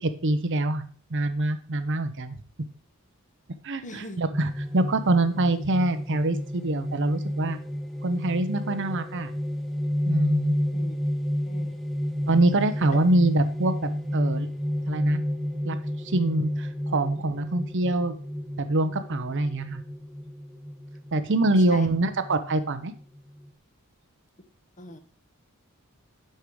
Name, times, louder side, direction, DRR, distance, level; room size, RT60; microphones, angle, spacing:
voice 1, 0.0-2.4 3.6-7.6 8.0-9.3 10.0-10.6 12.3-13.7 14.1-14.5 14.9-15.2 15.6-15.8 16.0-18.2 18.6-19.8 21.1-22.9, right 2 dB, 55° right, 11 dB, 0.8 m, -25 dB
voice 2, 3.8-4.2 10.7-11.0 11.5-11.7 12.9-13.0 21.7-21.9 24.8-25.0, left 1 dB, 35° left, 8 dB, 1.2 m, -40 dB
sound 1, 4.3-23.5, equal, ahead, 0.7 m, -31 dB
10.5 x 5.7 x 4.8 m, 0.42 s
head